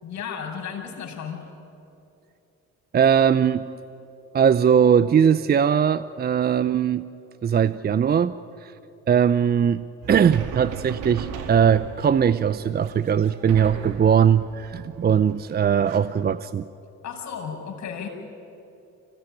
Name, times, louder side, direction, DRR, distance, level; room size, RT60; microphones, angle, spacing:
voice 1, 0.0-1.4 17.0-18.1, left 7 dB, 60° left, 3 dB, 5.7 m, -34 dB
voice 2, 2.9-3.7 4.3-7.1 7.4-8.7 9.1-16.7, right 8 dB, 30° right, 15 dB, 0.6 m, -20 dB
sound 1, 10.0-16.0, right 6 dB, 80° right, 2.2 m, -38 dB
25.0 x 17.0 x 10.0 m, 2.8 s
supercardioid pair, 80°, 30 cm